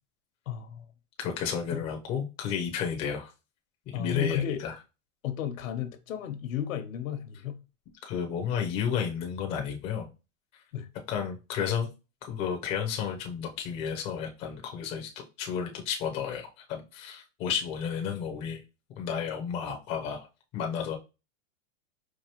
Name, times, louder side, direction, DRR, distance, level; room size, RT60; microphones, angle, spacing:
voice 1, 0.5-0.8 1.7-1.8 3.9-4.6 5.2-7.6 10.7-10.9, left 10 dB, 85° left, 0.9 m, -33 dB
voice 2, 1.2-3.3 3.9-4.7 8.0-10.1 11.1-11.9 12.2-18.6 19.0-20.3 20.5-21.0, left 7 dB, 15° left, 0.4 m, -32 dB
4.7 x 2.5 x 2.9 m
supercardioid pair, 150°, 39 cm